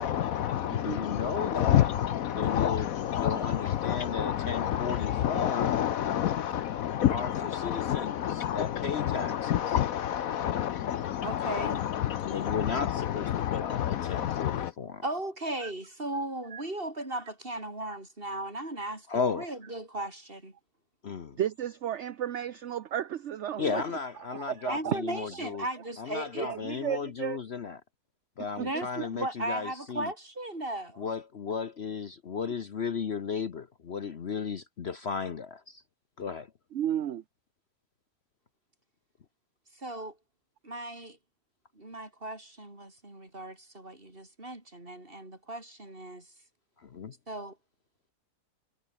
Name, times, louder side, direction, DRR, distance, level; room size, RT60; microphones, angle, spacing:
voice 1, 0.0-14.7, left 11 dB, 70° left, 1.1 m, -29 dB
voice 2, 0.7-1.9 2.3-5.7 7.1-9.8 11.5-11.8 12.2-15.0 19.1-19.5 21.0-21.4 23.6-25.7 26.0-27.8 28.4-30.1 31.0-35.8 36.2-36.5 46.8-47.1, left 6 dB, 50° left, 1.1 m, -35 dB
voice 3, 11.0-11.8 15.0-20.5 24.7-26.5 28.6-31.1 39.8-40.2 40.6-41.2 41.8-46.3 47.3-47.6, right 1 dB, 35° right, 5.4 m, -37 dB
voice 4, 21.4-23.8 24.3-24.9 26.4-27.4 28.6-28.9 36.7-37.2, right 10 dB, 55° right, 0.9 m, -33 dB
omnidirectional pair, 1.6 m